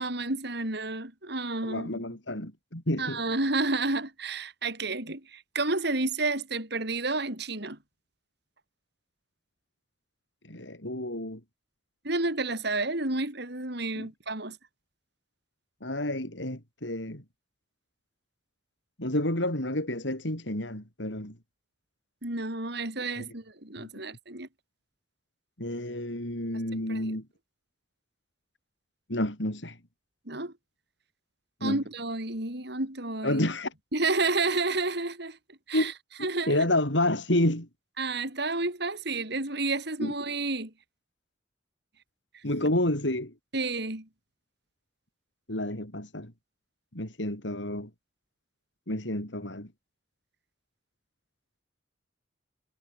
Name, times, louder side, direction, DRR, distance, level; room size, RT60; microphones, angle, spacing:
voice 1, 0.0-2.0 3.0-7.8 12.0-14.6 22.2-24.5 26.9-27.1 30.3-30.5 31.6-33.4 33.9-35.4 35.7-35.9 36.2-36.7 38.0-40.7 43.5-44.1, right 3 dB, 65° right, 5.2 m, -30 dB
voice 2, 1.6-3.2 10.5-11.4 14.0-14.1 15.8-17.2 19.0-21.4 23.2-23.3 23.8-23.9 25.6-27.3 29.1-29.8 31.6-31.8 33.2-33.7 35.7-35.9 36.2-37.7 40.0-40.1 42.4-43.3 45.5-46.3 46.9-47.9 48.9-49.7, left 1 dB, 80° left, 7.1 m, -29 dB
head